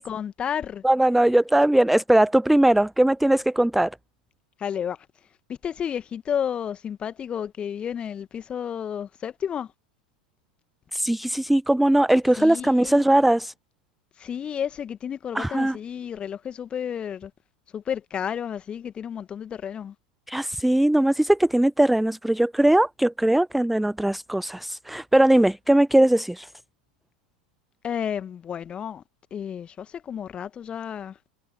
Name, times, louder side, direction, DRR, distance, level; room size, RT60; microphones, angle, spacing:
voice 1, 0.0-0.8 4.6-5.1 5.5-9.7 12.4-13.1 14.2-17.3 17.7-20.0 27.8-29.0 29.3-31.2, left 8 dB, 25° left, 1.9 m, -31 dB
voice 2, 0.8-3.9 10.9-13.5 15.4-15.8 20.3-26.5, right 1 dB, ahead, 0.3 m, -20 dB
figure-of-eight pair, 85°, 4 cm